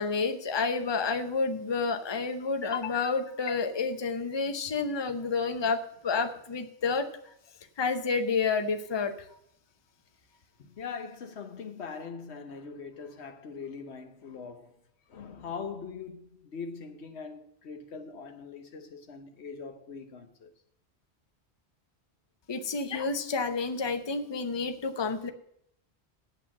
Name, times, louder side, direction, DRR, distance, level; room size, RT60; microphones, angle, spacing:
voice 1, 0.0-7.1 7.8-9.1 22.5-25.3, left 4 dB, 30° left, 0.7 m, -29 dB
voice 2, 10.6-14.8 15.1-20.5, left 5 dB, 75° left, 1.3 m, -42 dB
8.7 x 7.9 x 7.2 m
omnidirectional pair, 1.1 m